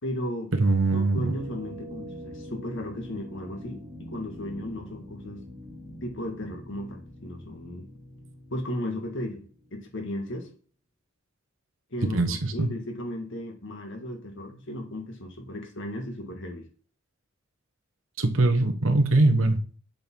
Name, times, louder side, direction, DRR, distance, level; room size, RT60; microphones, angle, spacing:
voice 1, 0.0-0.5 0.9-5.4 6.0-7.9 8.5-9.4 9.7-10.5 11.9-16.7, left 1 dB, 65° left, 3 dB, 1.9 m, -35 dB
voice 2, 0.6-1.3 12.1-12.7 18.2-19.8, right 2 dB, 70° right, 5 dB, 1.2 m, -22 dB
sound 1, 1.2-9.9, equal, 15° right, 2.5 m, -44 dB
7.7 x 5.5 x 4.6 m, 0.42 s
head